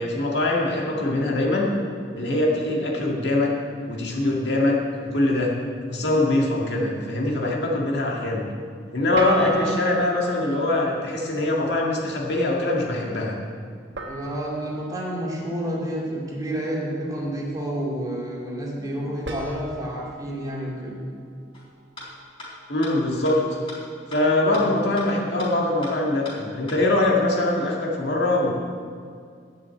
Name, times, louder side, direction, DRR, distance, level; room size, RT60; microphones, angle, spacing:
voice 1, 0.0-1.8 2.1-5.6 5.9-8.5 8.9-13.4 22.7-23.4 24.1-28.5, left 2 dB, 75° left, -1 dB, 1.9 m, -23 dB
sound 1, 9.1-11.5 13.9-16.5 19.2-22.3, right 3 dB, 80° right, 1.3 m, -37 dB
voice 2, 9.3-9.8 10.4-10.6 14.1-21.0 24.5-24.7, right 1 dB, 20° right, -4 dB, 2.5 m, -30 dB
sound 2, 21.5-21.6 22.0-22.1 22.4-22.5 22.8-22.9 23.2-23.3 23.7-23.8 24.1-24.2 24.5-24.6 25.0-25.1 25.4-25.5 25.8-25.9 26.2-26.3 26.7-26.8, left 2 dB, 30° left, 3.6 m, -38 dB
10.5 x 6.7 x 8.3 m, 2.2 s
head